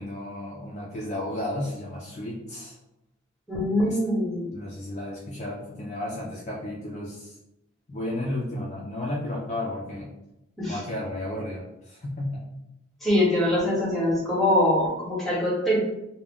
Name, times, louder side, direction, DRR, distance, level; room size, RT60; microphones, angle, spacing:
voice 1, 0.0-2.8 3.9-4.0 4.5-7.4 7.9-10.1 10.7-12.4, left 1 dB, 35° left, -3 dB, 0.4 m, -33 dB
voice 2, 3.5-4.5 10.6-10.8 13.0-15.8, left 1 dB, ahead, -6 dB, 0.8 m, -23 dB
2.3 x 2.2 x 3.5 m, 0.89 s
head